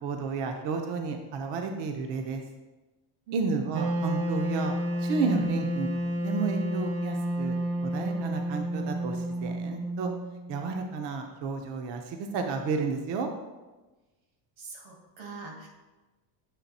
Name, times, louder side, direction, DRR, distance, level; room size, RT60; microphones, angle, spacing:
voice 1, 0.0-2.4 3.3-4.8 5.0-7.5 7.8-10.1 10.5-13.3, right 4 dB, 60° right, 4 dB, 0.8 m, -32 dB
voice 2, 3.3-3.6 14.6-15.7, right 3 dB, 85° right, 0 dB, 1.9 m, -43 dB
Wind instrument woodwind instrument, 3.7-10.7, right 1 dB, 30° right, 0.5 m, -30 dB
7.5 x 3.3 x 4.1 m, 1.2 s
cardioid pair, 135°, 48 cm